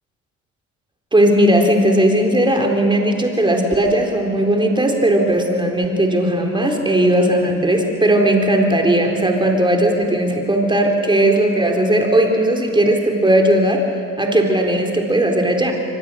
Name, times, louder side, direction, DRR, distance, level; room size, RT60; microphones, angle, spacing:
voice 1, 1.1-13.8 14.2-15.7, right 1 dB, 15° right, 2 dB, 4.0 m, -17 dB
23.5 x 20.5 x 6.5 m, 2.6 s
hypercardioid pair, 60°, 37 cm